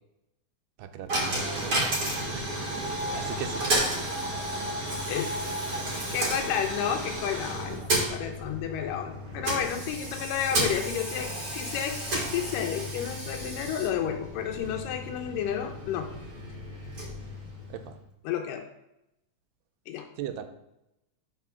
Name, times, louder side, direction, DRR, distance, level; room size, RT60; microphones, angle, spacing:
voice 1, 0.8-2.1 2.3-3.7 9.4-9.8 17.7-18.0 20.2-20.5, right 9 dB, 90° right, 8 dB, 2.3 m, -39 dB
Coin (dropping), 1.1-18.0, right 1 dB, 45° right, 1.1 m, -32 dB
voice 2, 5.1-5.4 6.1-7.8 8.1-16.1 18.3-18.6 19.9-20.1, left 9 dB, 85° left, 4 dB, 2.2 m, -31 dB
6.1 x 4.4 x 5.7 m, 0.86 s
omnidirectional pair, 3.9 m